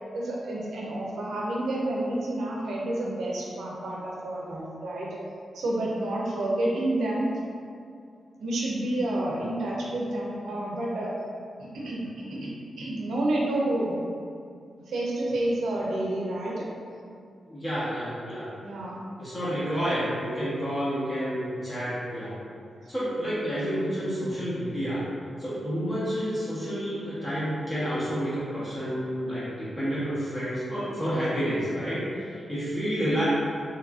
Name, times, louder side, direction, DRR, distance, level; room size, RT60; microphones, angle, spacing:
voice 1, 0.1-5.2 5.5-7.3 8.4-11.1 11.6-12.5 12.8-14.0 14.9-16.7 18.6-19.0, right 1 dB, 85° right, -4 dB, 0.5 m, -29 dB
voice 2, 17.5-18.5 19.2-22.3 22.9-25.0 25.4-33.2, equal, 30° left, -12 dB, 1.0 m, -29 dB
3.1 x 2.4 x 2.3 m, 2.4 s
cardioid pair, 80°, 0 cm